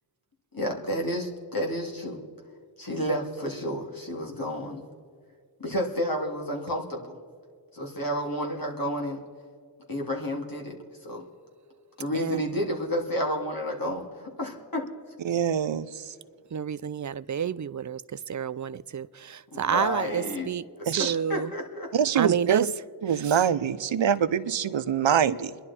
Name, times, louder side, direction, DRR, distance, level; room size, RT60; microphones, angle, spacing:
voice 1, 0.5-2.2 2.8-4.8 5.6-7.2 7.7-9.2 9.9-11.2 12.0-15.0 19.5-20.5 21.0-21.9, equal, 45° left, 2.8 m, -31 dB
voice 2, 12.1-12.5 16.5-21.5 22.2-22.6 23.2-23.4, right 8 dB, 40° right, 0.5 m, -30 dB
voice 3, 15.2-16.1 20.9-21.2 21.9-22.7 23.0-25.6, right 8 dB, 70° right, 0.8 m, -24 dB
29.0 x 11.0 x 4.4 m
cardioid pair, 55°, 48 cm